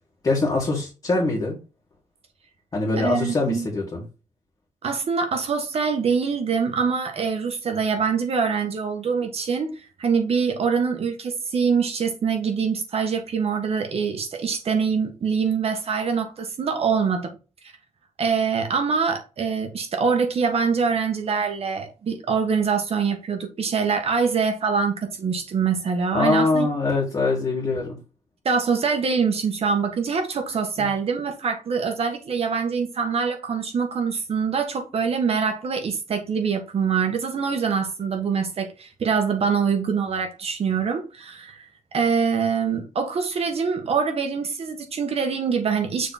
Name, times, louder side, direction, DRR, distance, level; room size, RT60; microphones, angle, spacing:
voice 1, 0.2-1.6 2.7-4.0 26.1-28.0 30.8-30.9, left 3 dB, 30° left, 2.0 m, -23 dB
voice 2, 3.0-3.7 4.8-9.7 10.0-17.3 18.2-26.7 28.4-41.6 41.9-46.1, right 5 dB, 50° right, 1.3 m, -24 dB
6.7 x 3.6 x 4.2 m
wide cardioid pair, 145°, 13 cm